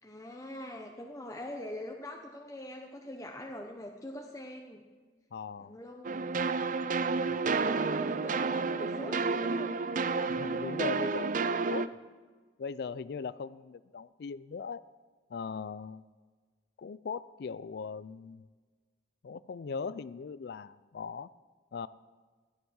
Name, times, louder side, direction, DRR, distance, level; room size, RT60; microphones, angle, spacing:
voice 1, 0.0-4.8 5.6-6.3 7.6-9.8, left 1 dB, 20° left, 1 dB, 0.9 m, -44 dB
voice 2, 5.3-5.8 7.3-7.4 10.3-12.0 12.6-14.8 15.3-16.0 16.8-18.4 19.2-21.3 21.7-21.9, left 5 dB, 65° left, 16 dB, 0.4 m, -39 dB
sound 1, 6.0-11.9, right 4 dB, 50° right, 0.5 m, -30 dB
14.5 x 9.8 x 6.3 m, 1.4 s
head